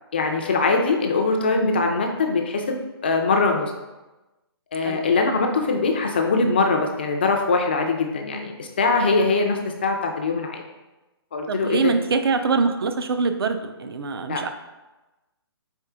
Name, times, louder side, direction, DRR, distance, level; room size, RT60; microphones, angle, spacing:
voice 1, 0.1-2.8 3.0-3.7 4.7-10.6 11.3-11.9 14.3-14.5, left 3 dB, 25° left, 3 dB, 0.3 m, -22 dB
voice 2, 11.5-14.5, right 4 dB, 65° right, 8 dB, 0.5 m, -24 dB
4.4 x 3.3 x 3.5 m, 1.1 s
hypercardioid pair, 170°, 14 cm